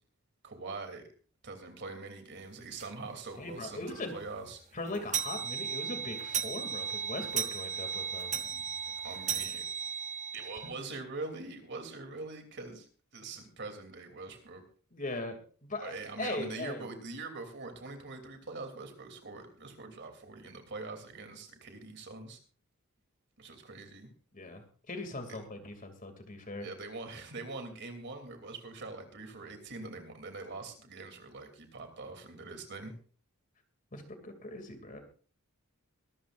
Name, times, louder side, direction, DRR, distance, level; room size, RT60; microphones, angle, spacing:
voice 1, 0.4-1.1 1.4-4.6 9.0-9.6 10.3-14.6 15.8-22.4 23.4-24.1 26.6-32.9, right 3 dB, 55° right, 5 dB, 3.0 m, -43 dB
sound 1, 2.8-3.0 3.4-3.5 3.8-3.9 4.3-10.7, right 7 dB, 35° right, 0.7 m, -36 dB
voice 2, 3.4-4.1 4.7-8.4 14.9-15.4 15.7-16.9 24.3-26.7 33.9-35.0, left 2 dB, 40° left, 6 dB, 2.6 m, -40 dB
23.5 x 13.0 x 2.5 m, 0.39 s
head